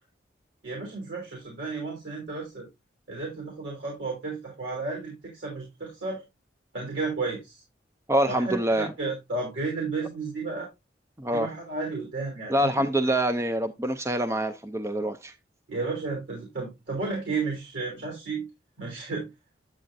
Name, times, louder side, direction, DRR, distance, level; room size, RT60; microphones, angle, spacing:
voice 1, 0.6-2.7 3.1-6.2 6.7-7.6 8.3-10.7 11.3-13.1 15.7-18.5 18.8-19.3, right 3 dB, 85° right, 3.0 m, -33 dB
voice 2, 8.1-8.9 11.2-11.5 12.5-15.3, right 1 dB, 15° right, 0.4 m, -25 dB
8.8 x 8.3 x 2.6 m
head